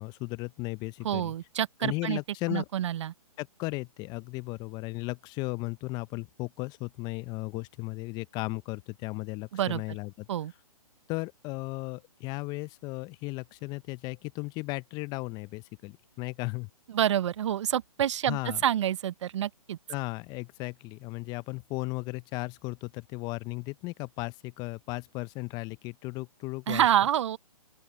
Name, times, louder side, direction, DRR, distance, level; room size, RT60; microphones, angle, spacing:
voice 1, 0.0-1.3 1.8-2.7 3.4-10.3 11.1-16.7 18.3-18.6 19.9-26.8, left 24 dB, 20° left, 0.7 m, -36 dB
voice 2, 1.0-2.2 2.5-3.1 9.5-9.8 10.3-10.5 16.9-19.8 26.7-27.4, right 11 dB, 50° right, 1.0 m, -27 dB
open air
figure-of-eight pair, 135°, 19 cm